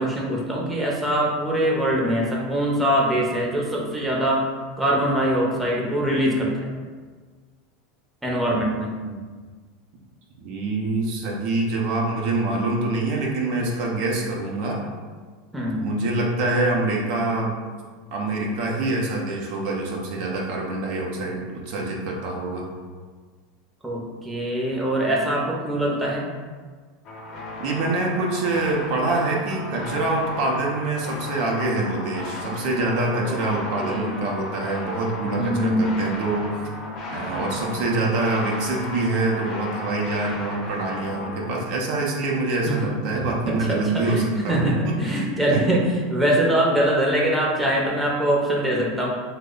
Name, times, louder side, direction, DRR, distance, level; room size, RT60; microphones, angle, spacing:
voice 1, 0.0-4.4 4.8-6.7 8.2-8.9 15.5-15.8 23.8-26.3 33.2-33.4 33.8-34.1 35.4-35.9 42.7-49.1, right 1 dB, 5° right, -4 dB, 0.7 m, -23 dB
voice 2, 10.4-14.8 15.7-17.6 18.1-22.7 27.6-36.5 37.1-45.6, right 2 dB, 65° right, -2 dB, 0.6 m, -25 dB
sound 1, 27.0-41.6, left 2 dB, 50° left, 0.7 m, -35 dB
3.1 x 2.1 x 3.7 m, 1.5 s
hypercardioid pair, 100°, 0 cm